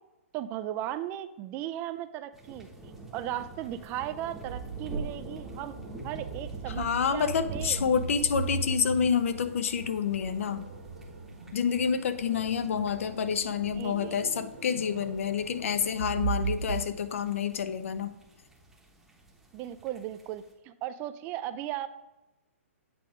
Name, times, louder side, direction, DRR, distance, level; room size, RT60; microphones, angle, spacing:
voice 1, 0.3-2.7 3.1-5.7 6.0-7.8 13.8-14.3 19.5-21.9, right 12 dB, 25° right, 12 dB, 0.4 m, -36 dB
sound 1, 2.3-20.5, right 2 dB, 5° right, 0.9 m, -48 dB
sound 2, 4.4-16.8, right 4 dB, 80° right, 1.6 m, -38 dB
voice 2, 6.7-10.7 11.5-18.1, left 7 dB, 65° left, 11 dB, 0.7 m, -28 dB
8.5 x 3.5 x 4.9 m, 1.0 s
hypercardioid pair, 145°, 8 cm